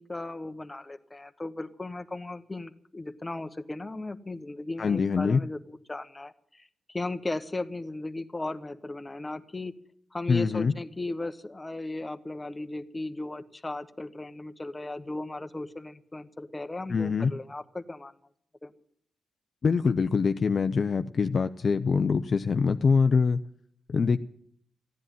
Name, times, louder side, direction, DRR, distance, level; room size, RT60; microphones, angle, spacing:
voice 1, 0.0-9.7 10.1-18.1 18.6-18.7, left 2 dB, 20° left, 9 dB, 1.0 m, -36 dB
voice 2, 4.8-5.4 10.3-10.7 16.9-17.3 19.6-23.4 23.9-24.2, left 5 dB, 50° left, 9 dB, 0.6 m, -24 dB
15.0 x 10.0 x 9.1 m, 0.65 s
cardioid pair, 100°, 0 cm